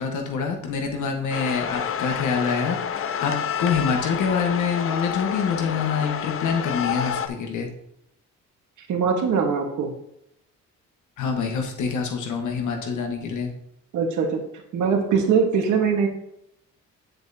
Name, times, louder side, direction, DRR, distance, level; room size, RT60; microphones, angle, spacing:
voice 1, 0.0-2.8 3.2-7.7 11.2-13.5, left 6 dB, 75° left, 3 dB, 1.4 m, -26 dB
sound 1, 1.3-7.3, left 8 dB, 45° left, 0.6 m, -29 dB
voice 2, 8.9-9.9 13.9-14.4 14.7-16.1, right 6 dB, 75° right, 3 dB, 1.4 m, -21 dB
7.5 x 7.4 x 2.8 m, 0.78 s
cardioid pair, 90°, 30 cm